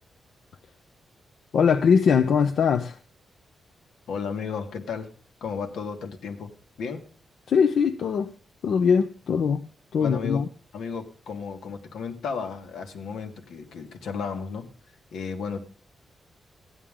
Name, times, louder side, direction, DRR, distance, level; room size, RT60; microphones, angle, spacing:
voice 1, 1.5-3.0 7.5-8.3 8.6-9.7 9.9-10.5, left 6 dB, 60° left, 7 dB, 0.7 m, -21 dB
voice 2, 4.1-5.1 5.4-7.1 10.0-10.5 10.7-14.7 15.1-15.7, left 5 dB, 80° left, 5 dB, 1.8 m, -34 dB
15.5 x 10.5 x 3.7 m, 0.39 s
wide cardioid pair, 180°, 0 cm